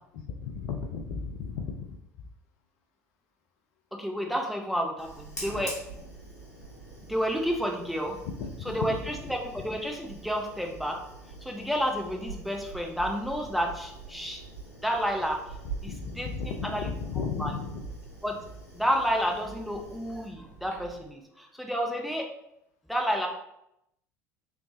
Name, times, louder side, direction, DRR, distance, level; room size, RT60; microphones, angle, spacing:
voice 1, 0.1-2.0 8.2-9.4 15.9-17.8, left 5 dB, 60° left, 4 dB, 0.4 m, -35 dB
voice 2, 3.9-5.8 7.1-8.2 8.7-11.0 11.4-14.4 14.8-16.9 17.4-17.5 18.2-18.4 18.7-22.3 22.9-23.3, equal, ahead, 1 dB, 0.6 m, -30 dB
Fire, 5.0-21.1, right 3 dB, 85° left, 0.8 m, -44 dB
3.4 x 3.1 x 2.5 m, 0.80 s
figure-of-eight pair, 65°, 9 cm